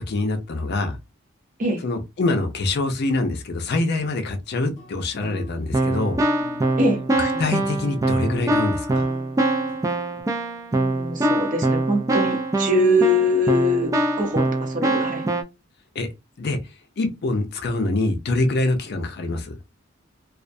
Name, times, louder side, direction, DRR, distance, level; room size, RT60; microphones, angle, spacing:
voice 1, 0.1-1.0 1.8-6.2 7.2-9.0 16.0-16.1 16.4-16.6 17.0-19.5, left 2 dB, 50° left, 0.5 m, -25 dB
sound 1, 4.6-10.2, left 1 dB, 10° left, 0.9 m, -43 dB
Keyboard (musical), 5.2-5.4 5.7-15.4, right 2 dB, 15° right, 0.3 m, -23 dB
voice 2, 10.7-15.3, left 1 dB, 40° right, 0.7 m, -22 dB
2.3 x 2.1 x 2.5 m
head